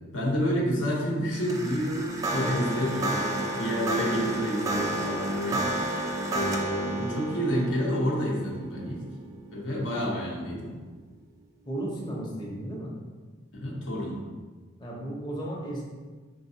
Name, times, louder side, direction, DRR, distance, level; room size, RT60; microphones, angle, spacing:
voice 1, 0.1-5.7 6.3-9.0 9.5-10.7 13.5-14.1, equal, 80° left, -3 dB, 1.0 m, -29 dB
sound 1, 1.3-10.7, right 1 dB, 15° right, 0.4 m, -32 dB
voice 2, 10.2-10.6 11.7-12.9 14.8-15.8, right 1 dB, 25° left, -4 dB, 0.7 m, -35 dB
4.6 x 3.7 x 2.7 m, 1.4 s
head